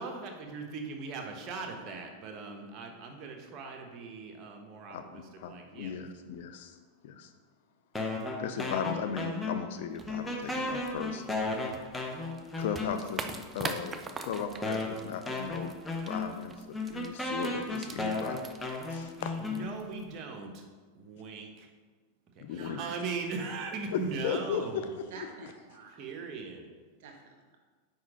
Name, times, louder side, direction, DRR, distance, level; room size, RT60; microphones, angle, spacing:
voice 1, 0.0-5.9 19.4-20.6 20.9-21.7 22.3-24.9 25.9-26.7, right 4 dB, 40° right, 2 dB, 1.0 m, -39 dB
voice 2, 4.9-6.8 7.0-7.3 8.4-11.2 12.6-16.6 16.9-18.5 18.9-19.3 22.4-22.8 23.9-25.3, left 7 dB, 70° left, 8 dB, 0.6 m, -36 dB
sound 1, 7.9-9.8 10.1-13.3 14.0-14.1 14.6-20.0, left 2 dB, 10° left, 0.9 m, -35 dB
sound 2, 9.9-20.2, right 4 dB, 20° right, 0.5 m, -44 dB
voice 3, 22.4-22.9 25.1-26.0 27.0-27.6, right 4 dB, 65° right, 2 dB, 1.2 m, -49 dB
4.9 x 4.3 x 4.9 m, 1.4 s
hypercardioid pair, 120°, 0 cm